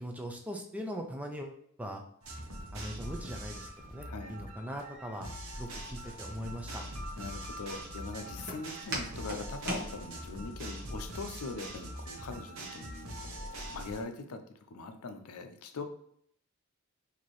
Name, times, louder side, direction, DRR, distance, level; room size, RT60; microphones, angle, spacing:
voice 1, 0.0-2.0 2.7-5.3 5.5-6.8, equal, 5° right, 2 dB, 0.4 m, -40 dB
sound 1, 2.2-14.0, equal, 75° right, 0.9 m, -43 dB
voice 2, 4.1-4.4 7.2-14.4 14.7-15.8, left 3 dB, 85° left, 7 dB, 0.5 m, -42 dB
Walk footsteps, 6.0-10.6, right 1 dB, 45° right, 0.9 m, -41 dB
4.2 x 2.8 x 3.1 m, 0.65 s
head